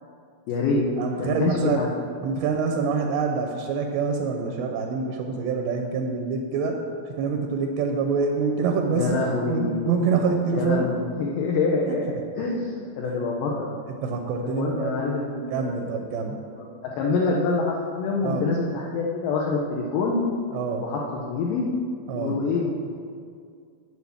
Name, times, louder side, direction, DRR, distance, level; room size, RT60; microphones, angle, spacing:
voice 1, 0.5-0.8 1.2-1.9 8.9-10.0 10.5-13.7 14.4-16.0 16.6-20.2 20.8-21.7 22.2-22.7, left 3 dB, 75° left, -3 dB, 2.0 m, -26 dB
voice 2, 1.0-1.8 2.2-6.8 7.2-9.2 9.5-10.9 11.9-12.0 14.0-15.2 15.5-16.4 18.2-18.5 20.5-20.8 22.1-22.4, right 5 dB, 80° right, 3 dB, 2.8 m, -26 dB
8.0 x 5.7 x 7.1 m, 2.2 s
omnidirectional pair, 4.9 m